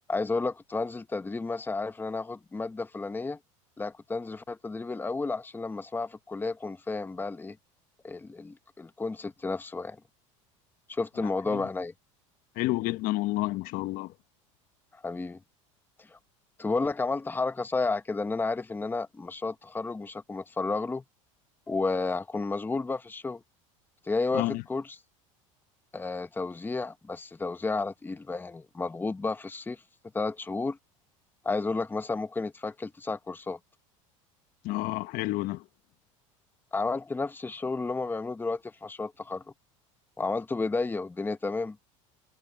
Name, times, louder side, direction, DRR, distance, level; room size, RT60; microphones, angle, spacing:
voice 1, 0.1-3.4 3.8-7.6 8.0-10.0 10.9-11.9 14.9-15.4 16.0-16.2 16.6-21.0 21.7-23.4 24.0-25.0 25.9-29.8 30.1-30.8 31.4-33.6 36.7-39.4 40.2-41.8, left 3 dB, 10° left, 1.1 m, -32 dB
voice 2, 12.5-14.1 24.3-24.6 34.6-35.7, left 19 dB, 60° left, 1.3 m, -30 dB
supercardioid pair, 105°, 17 cm